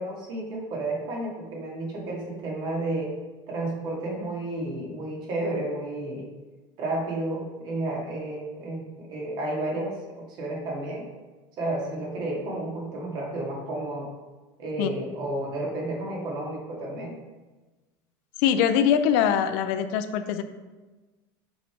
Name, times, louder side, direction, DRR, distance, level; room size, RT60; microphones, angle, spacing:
voice 1, 0.0-3.1 3.5-6.3 6.8-11.1 11.6-14.1 14.6-17.1, right 2 dB, 45° right, -2 dB, 2.5 m, -31 dB
voice 2, 18.4-20.4, left 8 dB, 65° left, 9 dB, 0.6 m, -22 dB
7.0 x 5.7 x 4.9 m, 1.2 s
cardioid pair, 150°, 10 cm